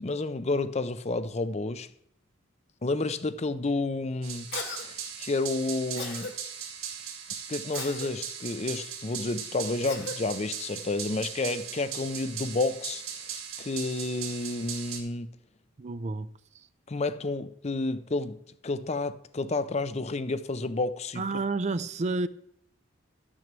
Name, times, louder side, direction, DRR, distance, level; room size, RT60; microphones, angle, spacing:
voice 1, 0.0-1.9 2.8-6.3 7.5-13.0 13.6-15.3 16.9-21.2, left 3 dB, 30° left, 0.5 m, -30 dB
sound 1, 4.2-15.0, right 8 dB, 85° right, 2.0 m, -39 dB
Cough, 4.5-4.8 6.0-6.3 7.7-8.1 9.9-10.2, left 4 dB, 55° left, 1.6 m, -36 dB
voice 2, 15.8-16.3 16.5-16.7 21.2-22.3, right 3 dB, 35° right, 0.4 m, -30 dB
12.0 x 6.2 x 7.5 m
head